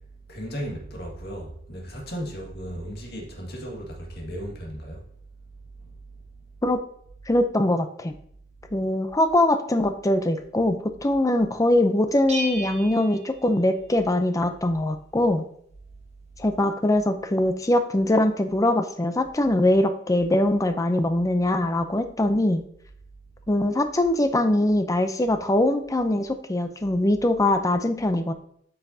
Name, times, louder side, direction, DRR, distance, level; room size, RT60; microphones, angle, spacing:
voice 1, 0.3-5.1, equal, 55° left, 1.9 m, -35 dB
voice 2, 7.3-8.1 8.7-15.5 16.4-22.6 23.5-28.3, left 1 dB, 20° left, 0.6 m, -22 dB
Bell, 12.3-14.1, right 1 dB, 35° right, 1.1 m, -35 dB
9.0 x 5.6 x 2.8 m
head